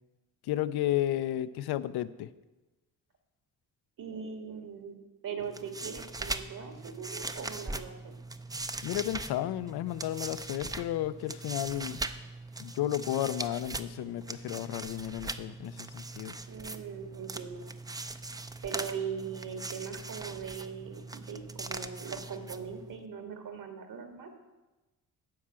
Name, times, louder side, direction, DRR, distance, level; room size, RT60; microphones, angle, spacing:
voice 1, 0.4-2.3 8.8-12.0 12.6-16.4, left 13 dB, 85° left, 13 dB, 0.6 m, -33 dB
voice 2, 4.0-5.0 5.2-8.1 16.5-17.7 18.6-24.3, right 6 dB, 60° right, 4 dB, 1.9 m, -40 dB
sound 1, 5.4-23.0, right 2 dB, 10° right, 0.4 m, -40 dB
12.5 x 4.6 x 8.7 m, 1.1 s
cardioid pair, 100°, 37 cm